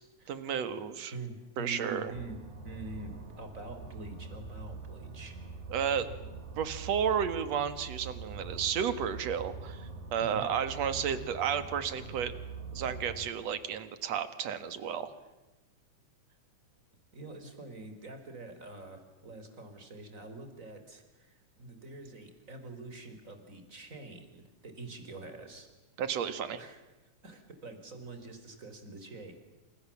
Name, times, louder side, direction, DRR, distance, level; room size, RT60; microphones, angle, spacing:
voice 1, 0.3-1.1 1.6-2.1 5.7-6.1 6.6-12.3 12.7-15.1 26.0-26.6, right 8 dB, 60° right, 12 dB, 2.7 m, -32 dB
voice 2, 1.1-2.4 2.6-5.4 10.2-10.4 17.1-25.7 26.6-26.8 27.2-29.3, right 2 dB, 25° right, 7 dB, 4.0 m, -45 dB
sound 1, 2.1-13.3, right 4 dB, 75° right, 4.8 m, -44 dB
29.0 x 27.5 x 7.3 m, 1.1 s
omnidirectional pair, 3.5 m